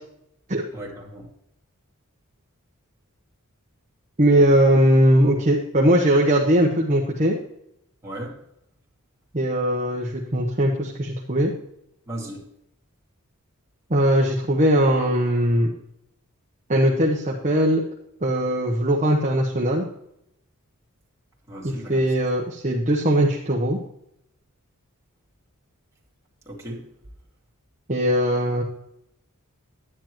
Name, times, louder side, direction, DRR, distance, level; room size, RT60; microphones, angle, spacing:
voice 1, 0.7-1.3 8.0-8.4 12.1-12.4 21.5-22.0 26.5-26.8, right 1 dB, 15° right, -4 dB, 2.5 m, -36 dB
voice 2, 4.2-7.4 9.3-11.5 13.9-15.7 16.7-17.8 18.2-19.9 21.6-23.8 27.9-28.6, right 1 dB, 30° right, -2 dB, 1.0 m, -20 dB
10.5 x 9.9 x 3.0 m, 0.79 s
head